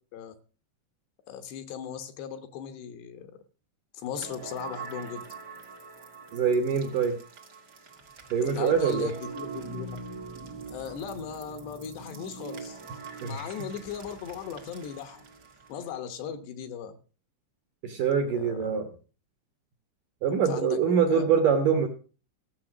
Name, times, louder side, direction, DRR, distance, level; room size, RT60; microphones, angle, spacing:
voice 1, 1.3-3.3 3.9-5.3 8.4-10.0 10.7-12.8 13.2-15.2 15.7-17.0 18.3-18.7 20.5-20.8 21.1-21.3, left 8 dB, 75° left, 9 dB, 3.0 m, -37 dB
sound 1, 4.1-16.0, right 4 dB, 85° right, 0.9 m, -43 dB
voice 2, 6.3-7.2 8.3-9.1 13.2-13.6 17.8-18.9 20.2-21.9, right 7 dB, 70° right, 4 dB, 2.1 m, -24 dB
15.5 x 7.2 x 6.0 m, 0.38 s
omnidirectional pair, 5.3 m